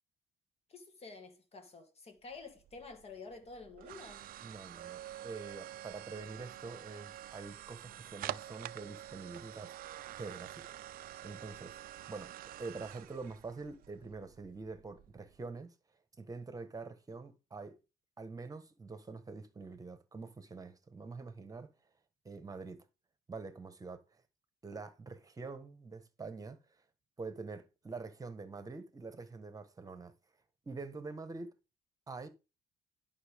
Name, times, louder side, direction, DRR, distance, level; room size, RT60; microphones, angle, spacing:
voice 1, 0.7-4.3, left 4 dB, 35° left, 1.9 m, -50 dB
sound 1, 2.3-15.4, right 13 dB, 60° right, 0.5 m, -47 dB
voice 2, 4.4-9.8 10.1-10.6 11.2-11.8 12.1-12.3 12.6-15.7 16.2-17.8 18.2-21.7 22.2-22.9 23.3-24.2 24.6-26.8 27.2-30.1 30.6-31.5 32.1-32.3, right 4 dB, 20° right, 1.4 m, -45 dB
11.0 x 5.6 x 3.6 m
cardioid pair, 110°, 17 cm